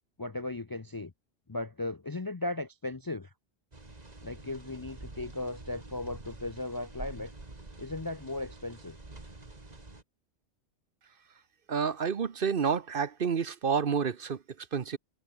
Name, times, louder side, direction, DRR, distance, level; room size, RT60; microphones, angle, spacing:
voice 1, 0.2-1.1 1.5-3.3 4.2-7.3 7.8-9.0, left 2 dB, 25° left, 0.5 m, -36 dB
sound 1, 3.7-10.0, right 2 dB, 35° right, 2.5 m, -47 dB
voice 2, 11.7-15.0, right 6 dB, 55° right, 1.1 m, -29 dB
omnidirectional pair, 1.1 m